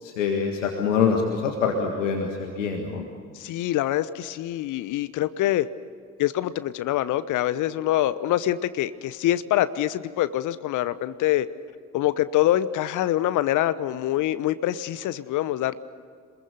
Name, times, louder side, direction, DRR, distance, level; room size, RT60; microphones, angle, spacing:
voice 1, 0.0-3.0, left 6 dB, 80° left, 2 dB, 1.9 m, -25 dB
voice 2, 3.3-5.7 6.2-11.5 11.9-15.7, left 13 dB, 55° left, 14 dB, 1.0 m, -25 dB
27.0 x 21.5 x 6.9 m, 2.1 s
figure-of-eight pair, 50°, 37 cm